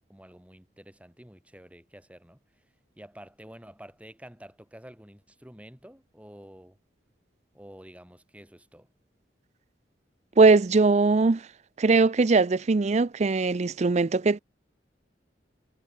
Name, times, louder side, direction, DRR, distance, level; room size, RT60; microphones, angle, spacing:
voice 1, 0.1-2.6 3.0-6.8 7.5-8.9, equal, 10° right, 4.7 m, -49 dB
voice 2, 10.4-11.5 11.8-14.4, right 3 dB, 40° right, 0.5 m, -20 dB
head